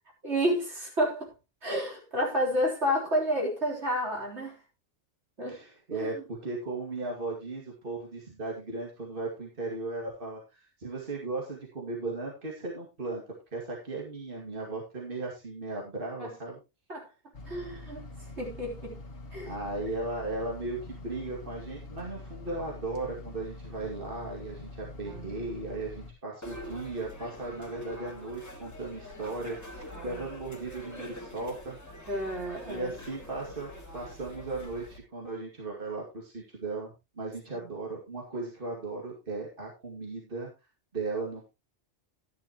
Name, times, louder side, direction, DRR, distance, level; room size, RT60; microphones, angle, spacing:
voice 1, 0.2-1.3 1.6-4.6 5.4-5.6 5.9-6.2 16.2-16.3 16.9-17.1 17.4-18.1 18.4-19.0 19.3-19.5 25.1-25.3 29.9-30.3 32.1-33.0 37.5-37.7, equal, 70° right, 4.1 m, -30 dB
voice 2, 5.5-13.2 13.5-16.6 19.4-31.8 32.7-40.5 40.9-41.4, right 3 dB, 50° right, 2.5 m, -36 dB
sound 1, 17.3-26.1, left 2 dB, 55° left, 1.6 m, -44 dB
sound 2, 26.4-35.0, left 1 dB, 15° left, 2.4 m, -44 dB
12.0 x 10.5 x 3.0 m
omnidirectional pair, 1.2 m